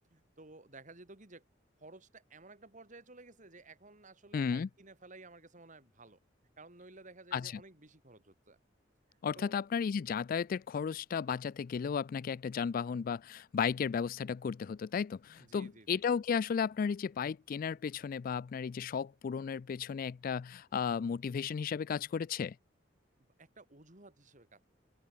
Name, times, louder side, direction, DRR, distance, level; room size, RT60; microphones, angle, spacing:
voice 1, 0.1-1.4 1.8-6.2 6.6-8.6 9.4-9.5 15.4-16.0 23.4-24.6, right 3 dB, 45° right, 3.5 m, -54 dB
voice 2, 4.3-4.7 7.3-7.6 9.2-22.6, left 6 dB, 50° left, 0.3 m, -34 dB
open air
head